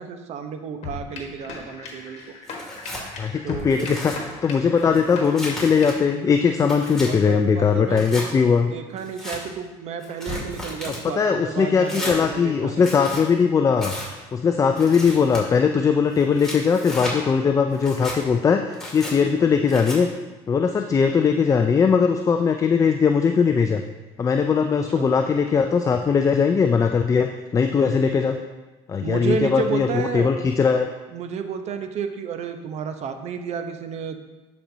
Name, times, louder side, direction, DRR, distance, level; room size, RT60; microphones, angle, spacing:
voice 1, 0.0-2.4 3.4-4.0 7.1-8.4 8.7-13.0 24.9-25.2 27.8-28.3 29.0-30.3 31.1-34.2, right 6 dB, 55° right, 7 dB, 0.8 m, -31 dB
sound 1, 0.8-6.1, left 4 dB, 50° left, 1.4 m, -37 dB
Tearing, 2.5-3.1 3.6-4.2 4.8-5.9 6.4-7.1 7.9-8.3 9.0-9.4 10.0-11.0 11.9-12.2 12.8-13.2 13.8-14.1 14.8-15.4 16.1-17.2 17.7-18.2 18.7-19.1 19.7-20.0, left 1 dB, 5° left, 2.3 m, -34 dB
voice 2, 3.2-4.1 4.4-8.7 11.2-13.9 14.3-18.6 18.9-20.1 20.5-23.8 24.2-28.4 28.9-30.9, left 6 dB, 25° left, 6 dB, 0.4 m, -20 dB
11.0 x 4.3 x 2.7 m, 1.2 s
supercardioid pair, 90°, 14 cm